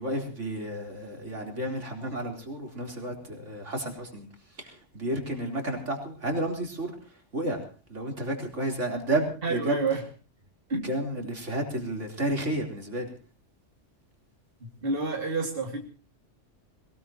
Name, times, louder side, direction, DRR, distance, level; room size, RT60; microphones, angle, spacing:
voice 1, 0.0-4.3 4.6-6.9 7.3-7.6 7.9-9.7 10.8-13.1, right 1 dB, 80° right, 2 dB, 4.2 m, -31 dB
voice 2, 9.4-10.0 10.7-10.9 14.8-15.8, right 3 dB, 50° right, 1 dB, 2.7 m, -29 dB
21.5 x 19.5 x 3.0 m, 0.36 s
omnidirectional pair, 1.2 m